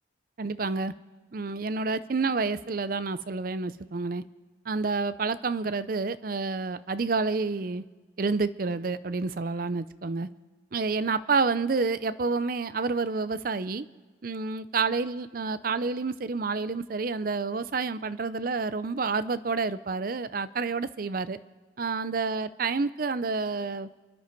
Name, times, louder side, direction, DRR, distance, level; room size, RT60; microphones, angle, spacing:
voice 1, 0.4-0.9 1.3-4.2 4.7-7.8 8.2-10.3 10.7-13.8 14.2-21.4 21.8-24.0, right 4 dB, 45° right, 15 dB, 0.5 m, -29 dB
29.0 x 10.0 x 4.6 m, 1.3 s
head